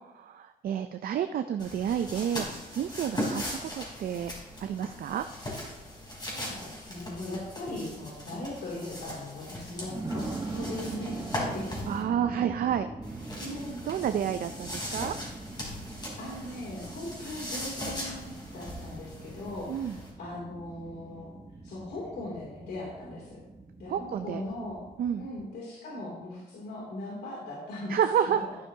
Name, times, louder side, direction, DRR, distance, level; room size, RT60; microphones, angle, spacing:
voice 1, 0.1-2.5 2.7-4.3 4.6-5.2 11.9-12.9 13.9-15.2 19.7-19.9 23.9-24.4 25.0-25.3 27.9-28.4, right 9 dB, 60° right, 8 dB, 0.5 m, -30 dB
sound 1, 1.6-12.0 13.0-20.1, left 1 dB, 25° left, 3.9 m, -39 dB
voice 2, 6.3-10.2 10.5-11.7 13.4-13.8 16.2-21.3 21.6-23.4 23.8-24.8 25.2-28.0, left 1 dB, 75° left, -5 dB, 2.8 m, -39 dB
sound 2, 7.2-7.4 8.0-8.1 9.9-25.5, right 2 dB, 20° right, 1.2 m, -42 dB
11.5 x 9.6 x 2.8 m, 0.99 s
cardioid pair, 95°, 17 cm